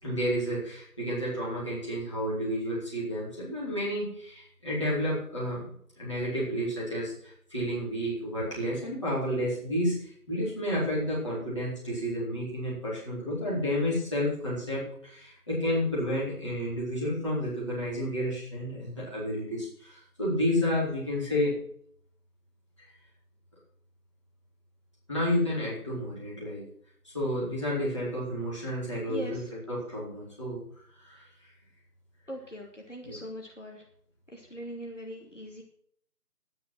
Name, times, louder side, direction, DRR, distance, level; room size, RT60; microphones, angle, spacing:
voice 1, 0.0-21.6 22.8-22.9 25.1-26.6 27.0-30.6 30.9-31.2 33.0-33.2, equal, 20° left, -7 dB, 4.3 m, -31 dB
voice 2, 32.3-33.8 34.3-35.6, equal, 50° left, 0 dB, 2.6 m, -41 dB
11.5 x 9.8 x 6.0 m, 0.62 s
figure-of-eight pair, 170°, 47 cm